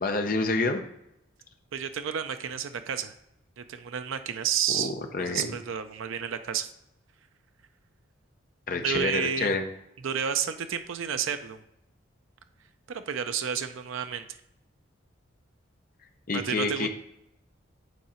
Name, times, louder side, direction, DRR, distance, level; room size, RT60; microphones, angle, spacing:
voice 1, 0.0-0.8 4.7-5.5 8.7-9.6 16.3-16.9, left 3 dB, 40° left, 5 dB, 0.6 m, -28 dB
voice 2, 1.7-3.1 3.6-4.9 5.2-6.7 8.7-9.5 10.0-11.6 12.9-14.3 16.3-16.9, right 8 dB, 70° right, 9 dB, 0.4 m, -31 dB
8.3 x 3.7 x 4.3 m, 0.81 s
head